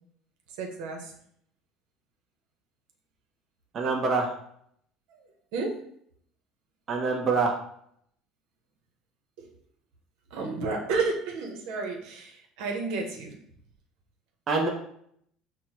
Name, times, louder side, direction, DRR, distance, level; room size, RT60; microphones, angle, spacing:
voice 1, 0.6-1.1 5.5-5.8 9.4-9.5 10.3-13.3, right 4 dB, 80° right, 1 dB, 0.8 m, -31 dB
voice 2, 3.7-4.4 6.9-7.5 14.5-14.7, right 4 dB, 35° right, -1 dB, 0.7 m, -25 dB
6.1 x 2.1 x 2.9 m, 0.68 s
cardioid pair, 145°, 0 cm